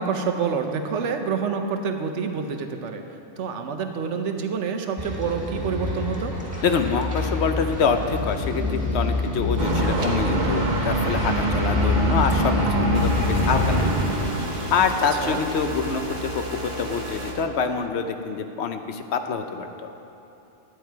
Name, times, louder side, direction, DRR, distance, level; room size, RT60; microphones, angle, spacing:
voice 1, 0.0-6.4 15.2-15.4, right 5 dB, 75° right, 5 dB, 1.1 m, -27 dB
sound 1, 5.0-17.2, left 2 dB, 5° right, 1.5 m, -29 dB
voice 2, 6.6-13.8 14.7-19.9, left 5 dB, 70° left, 7 dB, 0.9 m, -26 dB
sound 2, 9.6-14.5, right 1 dB, 40° right, 1.1 m, -24 dB
sound 3, 12.9-17.3, equal, 25° right, 1.2 m, -34 dB
11.0 x 8.7 x 4.6 m, 2.9 s
omnidirectional pair, 1.2 m